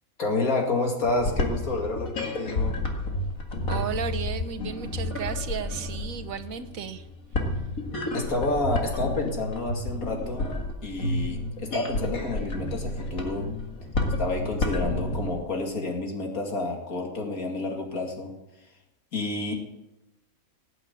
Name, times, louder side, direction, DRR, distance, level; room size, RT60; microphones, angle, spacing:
voice 1, 0.2-2.7 8.1-10.5 10.8-13.5 14.2-18.3 19.1-19.5, left 2 dB, 90° left, 1 dB, 2.8 m, -29 dB
sound 1, 1.0-15.4, left 2 dB, 75° left, 2.4 m, -30 dB
voice 2, 3.7-7.1, right 7 dB, 75° right, 10 dB, 1.4 m, -34 dB
18.0 x 7.9 x 8.4 m, 0.98 s
omnidirectional pair, 1.5 m